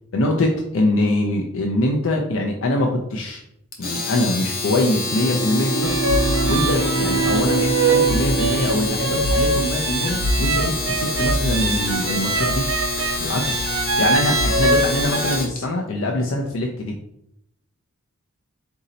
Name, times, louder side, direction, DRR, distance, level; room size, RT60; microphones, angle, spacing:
voice 1, 0.1-3.4 3.8-5.9 6.4-12.6 13.2-13.6 14.0-17.0, left 1 dB, 80° left, 1 dB, 0.5 m, -23 dB
Domestic sounds home sounds, 3.7-15.6, left 3 dB, 45° left, 0.8 m, -27 dB
Bowed string instrument, 5.0-10.2, right 3 dB, 20° left, 0.5 m, -26 dB
sound 1, 5.8-15.4, right 3 dB, 85° right, 0.5 m, -23 dB
4.1 x 2.7 x 3.9 m, 0.76 s
head